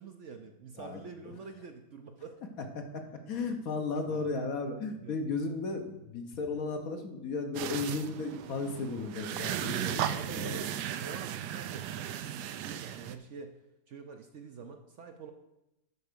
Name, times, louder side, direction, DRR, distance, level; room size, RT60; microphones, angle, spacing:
voice 1, 0.0-2.4 4.1-4.3 5.0-5.2 10.1-13.5 13.9-15.3, right 5 dB, 60° right, 5 dB, 0.8 m, -46 dB
voice 2, 2.6-10.6, left 3 dB, 60° left, 4 dB, 1.4 m, -35 dB
sound 1, 7.5-13.1, right 10 dB, 85° right, 1.1 m, -36 dB
9.7 x 4.6 x 6.7 m, 0.92 s
omnidirectional pair, 1.7 m